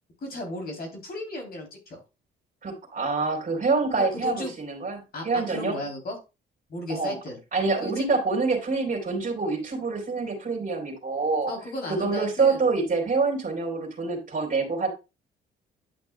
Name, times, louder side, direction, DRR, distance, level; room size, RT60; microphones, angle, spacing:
voice 1, 0.2-2.0 4.0-4.5 5.1-6.2 6.7-7.4 7.8-8.0 11.5-12.6, left 1 dB, 50° left, 1 dB, 3.4 m, -35 dB
voice 2, 2.6-5.8 6.9-7.2 7.5-11.5 11.9-14.9, right 4 dB, 45° right, 1 dB, 3.6 m, -26 dB
11.0 x 6.2 x 2.3 m, 0.27 s
cardioid pair, 90°, 20 cm